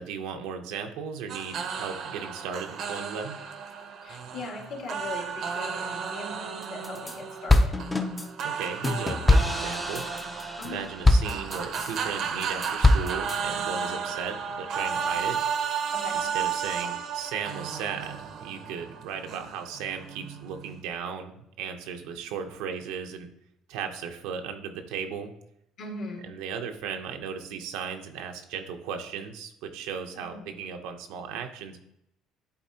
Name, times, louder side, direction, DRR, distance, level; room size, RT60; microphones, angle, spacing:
voice 1, 0.0-3.4 8.4-10.0 10.6-15.4 16.3-23.3 23.7-25.3 26.2-31.8, right 6 dB, 90° right, 5 dB, 0.8 m, -36 dB
sound 1, 1.3-20.8, right 7 dB, 55° right, 0.7 m, -33 dB
voice 2, 4.0-7.8 10.6-10.9 13.8-14.1 15.9-16.3 25.8-26.3 30.2-30.5, left 2 dB, 55° left, 1 dB, 1.8 m, -39 dB
sound 2, 6.6-7.1 7.5-12.0 12.4-13.4, left 2 dB, 15° left, 0.5 m, -23 dB
10.5 x 4.2 x 2.8 m, 0.79 s
cardioid pair, 125°, 0 cm